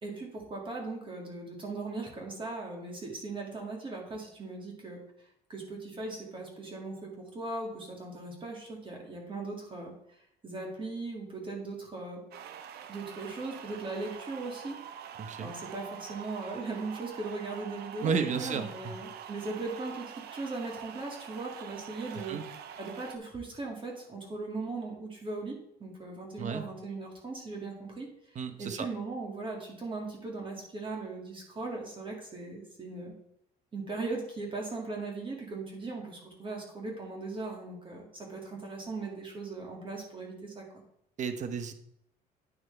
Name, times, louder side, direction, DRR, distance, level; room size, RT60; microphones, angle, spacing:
voice 1, 0.0-5.0 5.5-10.2 10.4-12.2 12.9-14.8 15.4-33.1 33.7-40.8, right 3 dB, 30° right, 0 dB, 2.1 m, -39 dB
sound 1, 12.3-23.2, right 8 dB, 70° right, 0.7 m, -45 dB
voice 2, 15.2-15.5 18.0-18.9 22.1-22.4 26.4-26.6 28.3-28.9 41.2-41.7, right 6 dB, 45° right, 8 dB, 0.9 m, -33 dB
10.0 x 5.9 x 3.3 m, 0.74 s
cardioid pair, 110°, 17 cm